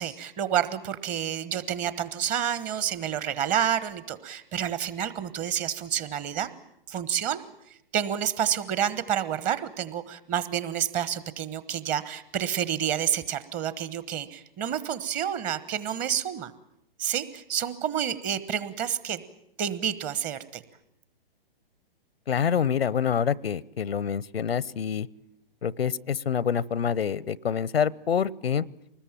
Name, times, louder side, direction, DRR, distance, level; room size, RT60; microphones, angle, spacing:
voice 1, 0.0-6.5 6.9-7.4 7.9-16.5 17.0-19.2 19.6-20.6, right 9 dB, 25° right, 15 dB, 1.3 m, -29 dB
voice 2, 22.3-25.1 25.6-28.6, left 7 dB, 85° left, 23 dB, 0.9 m, -26 dB
24.5 x 20.5 x 9.0 m, 0.76 s
hypercardioid pair, 130°, 30 cm